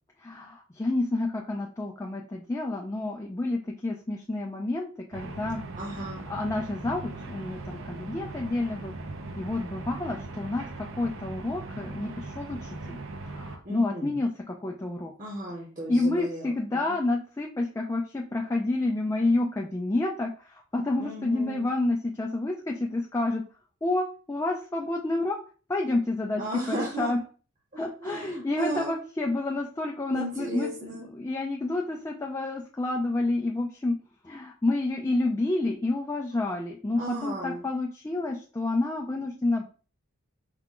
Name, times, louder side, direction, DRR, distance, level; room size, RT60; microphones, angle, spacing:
voice 1, 0.2-5.6 5.9-8.9 9.4-15.1 15.9-23.4 23.8-25.4 25.7-27.2 27.8-30.7 31.1-34.0 34.2-39.6, left 2 dB, 15° left, 0 dB, 0.3 m, -29 dB
sound 1, 5.1-13.6, right 2 dB, 60° right, 0.6 m, -39 dB
voice 2, 5.8-6.3 13.6-14.2 15.2-17.0 21.0-21.7 26.3-27.1 27.7-29.0 30.1-31.1 36.9-37.7, right 1 dB, 35° right, -4 dB, 0.9 m, -36 dB
4.8 x 2.2 x 3.7 m, 0.38 s
head